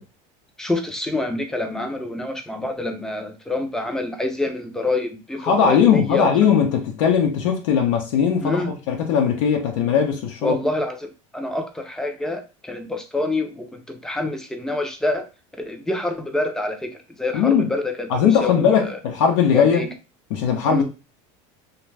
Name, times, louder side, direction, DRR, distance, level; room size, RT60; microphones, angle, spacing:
voice 1, 0.6-6.3 8.4-8.7 10.4-15.3 15.6-18.1 18.4-19.0 19.5-19.9 20.7-20.8, left 2 dB, 5° left, 0.4 m, -27 dB
voice 2, 5.4-10.6 17.3-17.7 18.1-19.9 20.3-20.8, left 7 dB, 85° left, 0.7 m, -19 dB
2.6 x 2.2 x 3.2 m
supercardioid pair, 145°, 16 cm